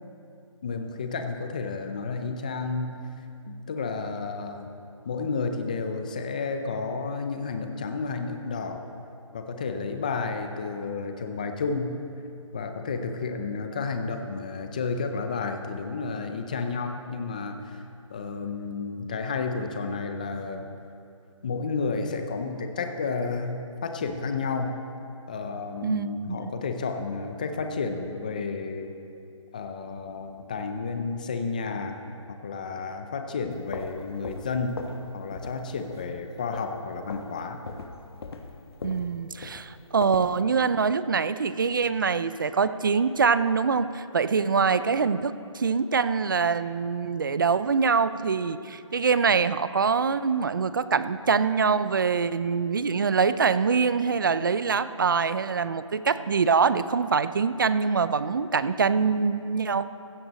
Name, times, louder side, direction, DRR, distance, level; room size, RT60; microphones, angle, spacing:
voice 1, 0.6-4.7 5.0-8.8 9.3-12.0 12.5-17.8 18.1-20.7 21.4-24.7 25.3-28.9 29.5-32.0 32.3-34.8 35.1-37.6, left 4 dB, 15° left, 6 dB, 0.4 m, -31 dB
voice 2, 25.8-26.4 38.8-59.8, right 5 dB, 40° right, 14 dB, 0.5 m, -24 dB
sound 1, 33.5-35.1 35.3-35.6 35.9-36.8 37.1-37.3 37.7-40.4, left 4 dB, 50° left, 1.3 m, -39 dB
15.5 x 12.5 x 4.1 m, 2.5 s
hypercardioid pair, 165°, 17 cm